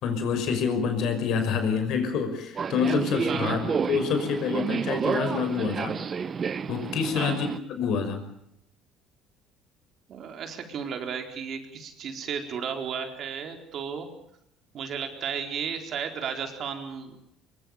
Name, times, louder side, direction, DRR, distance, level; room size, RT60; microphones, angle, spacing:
voice 1, 0.0-6.0 6.7-7.5 7.8-8.3, left 6 dB, 60° left, 8 dB, 5.8 m, -27 dB
Subway metro underground, 2.6-7.6, right 6 dB, 30° right, 1.0 m, -30 dB
voice 2, 3.3-3.6 7.1-7.4 10.1-14.1 14.7-17.2, right 6 dB, 50° right, 5 dB, 4.3 m, -34 dB
24.0 x 23.0 x 7.1 m, 0.74 s
cardioid pair, 135°, 0 cm